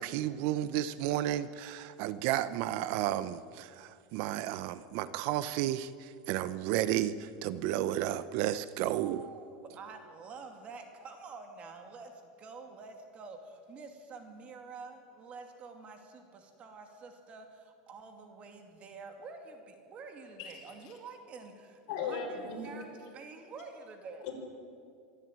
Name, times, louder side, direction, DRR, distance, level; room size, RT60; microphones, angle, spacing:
voice 1, 0.0-9.2, right 12 dB, 55° right, 15 dB, 0.7 m, -32 dB
voice 2, 9.0-24.3, right 4 dB, 30° right, 5 dB, 2.5 m, -48 dB
voice 3, 21.9-22.7 24.2-24.3, left 5 dB, 60° left, 0 dB, 5.8 m, -36 dB
24.5 x 12.5 x 8.9 m, 2.3 s
supercardioid pair, 145°, 4 cm